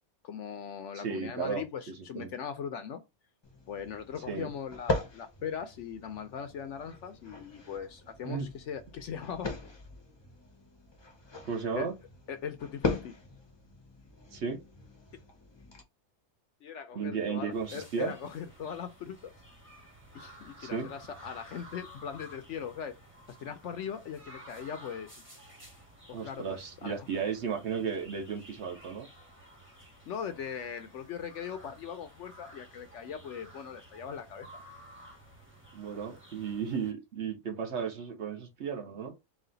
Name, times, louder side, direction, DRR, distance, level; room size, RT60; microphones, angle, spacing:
voice 1, 0.2-3.0 3.7-9.6 11.7-11.9 12.3-13.1 16.6-19.3 20.1-23.0 23.3-25.2 26.1-27.0 30.1-34.5, left 7 dB, 65° left, 0.8 m, -40 dB
voice 2, 0.9-1.6 2.1-2.3 4.3-4.5 8.2-8.5 11.4-11.9 14.3-14.6 16.9-18.1 20.6-20.9 26.1-29.1 35.7-39.1, right 6 dB, 55° right, 1.0 m, -34 dB
sound 1, 3.4-15.8, left 3 dB, 25° left, 0.6 m, -40 dB
sound 2, 17.5-36.9, equal, 10° right, 1.1 m, -53 dB
4.1 x 2.4 x 3.8 m
omnidirectional pair, 1.5 m